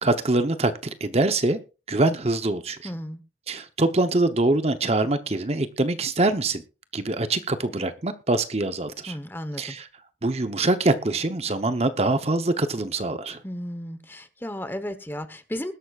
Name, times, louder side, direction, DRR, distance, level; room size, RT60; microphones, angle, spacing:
voice 1, 0.0-1.6 1.9-2.8 3.5-6.6 6.9-9.1 9.6-9.9 10.2-13.4, right 2 dB, 35° right, 10 dB, 0.9 m, -24 dB
voice 2, 2.8-3.2 9.1-9.8 13.4-15.7, equal, 10° left, 10 dB, 1.0 m, -34 dB
20.5 x 12.0 x 2.4 m, 0.31 s
head